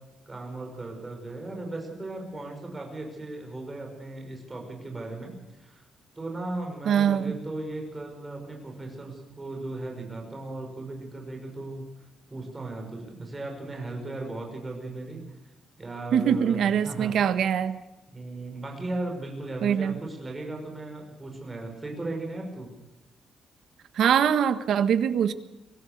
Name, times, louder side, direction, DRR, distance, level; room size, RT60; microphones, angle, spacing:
voice 1, 0.3-5.3 5.6-5.9 6.2-11.8 12.3-15.2 15.8-17.1 18.1-22.7, right 2 dB, 15° right, 2 dB, 5.9 m, -36 dB
voice 2, 6.9-7.3 16.1-17.8 19.6-19.9 24.0-25.3, right 8 dB, 65° right, 11 dB, 1.5 m, -23 dB
23.5 x 17.0 x 6.7 m, 0.99 s
cardioid pair, 155°, 0 cm